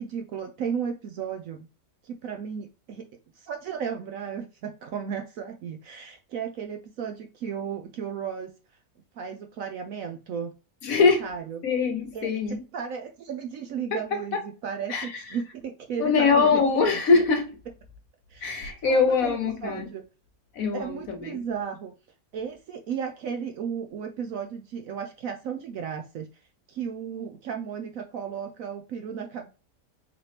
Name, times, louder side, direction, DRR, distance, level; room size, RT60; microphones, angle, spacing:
voice 1, 0.0-1.7 2.0-3.0 3.4-8.5 9.2-10.5 11.0-11.6 12.1-12.3 12.7-17.0 18.3-18.6 18.9-19.4 19.6-20.0 20.7-21.9 22.3-26.3 26.7-29.5, right 7 dB, 65° right, 0.9 m, -34 dB
voice 2, 10.8-11.3 11.6-12.6 13.9-14.0 14.3-14.4 14.9-15.4 16.0-17.6 18.4-19.9 20.5-21.4, left 4 dB, 60° left, 1.2 m, -23 dB
4.1 x 3.0 x 3.1 m
omnidirectional pair, 1.8 m